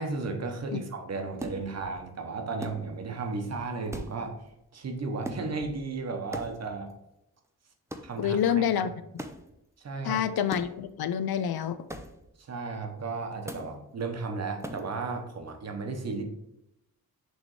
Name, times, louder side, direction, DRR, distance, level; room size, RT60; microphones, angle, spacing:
voice 1, 0.0-4.4 4.7-6.9 8.0-9.0 9.8-10.4 12.4-16.2, right 3 dB, 45° right, 5 dB, 0.9 m, -34 dB
sound 1, 1.4-2.0 2.6-3.2 3.5-3.6 3.9-4.6 5.2-6.0 6.3-6.9 7.9-8.3 9.2-9.6 10.5-11.0 11.9-12.4 13.5-13.8 14.6-15.0, right 1 dB, 10° right, 0.4 m, -41 dB
voice 2, 8.2-8.9 10.0-11.8, left 9 dB, 85° left, 12 dB, 0.6 m, -27 dB
6.3 x 3.3 x 4.8 m, 0.86 s
wide cardioid pair, 180°, 36 cm